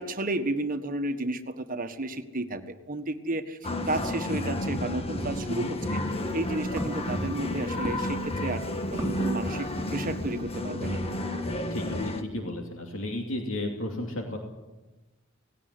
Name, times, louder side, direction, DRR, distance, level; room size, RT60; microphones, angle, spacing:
voice 1, 0.0-3.6 3.9-6.0 6.3-11.0, right 2 dB, 45° right, 7 dB, 1.5 m, -32 dB
sound 1, 3.6-12.2, left 1 dB, 30° left, 1.6 m, -31 dB
Walk footsteps, 5.9-10.5, equal, 15° right, 2.9 m, -40 dB
voice 2, 11.7-14.4, left 1 dB, 70° left, 2 dB, 2.8 m, -33 dB
18.5 x 17.0 x 9.9 m, 1.1 s
head